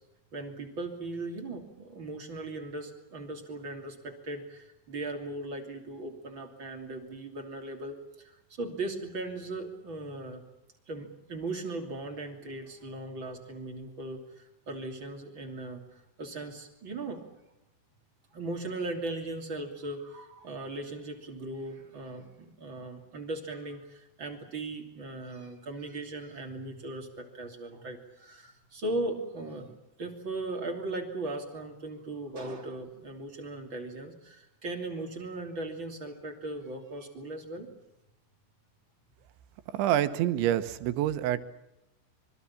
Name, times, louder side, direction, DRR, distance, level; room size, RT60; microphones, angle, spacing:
voice 1, 0.3-10.4 10.9-15.8 16.2-17.3 18.3-37.7, right 2 dB, 30° right, 3 dB, 2.9 m, -38 dB
voice 2, 39.7-41.4, right 12 dB, 85° right, 11 dB, 3.4 m, -27 dB
25.5 x 24.0 x 7.3 m, 0.90 s
omnidirectional pair, 5.3 m